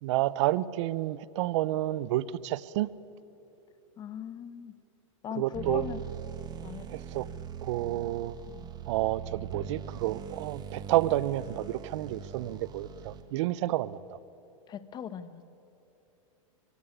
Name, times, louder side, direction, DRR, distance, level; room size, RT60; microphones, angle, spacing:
voice 1, 0.0-2.9 5.4-5.9 6.9-7.3 7.6-8.3 8.9-14.0, right 15 dB, 60° right, 19 dB, 0.7 m, -30 dB
voice 2, 4.0-4.7 5.2-6.0 6.6-7.0 8.5-8.7 14.7-15.4, left 9 dB, 25° left, 13 dB, 1.1 m, -39 dB
sound 1, 5.5-13.5, right 8 dB, 25° right, 1.2 m, -42 dB
23.5 x 16.5 x 9.9 m, 3.0 s
supercardioid pair, 135°, 17 cm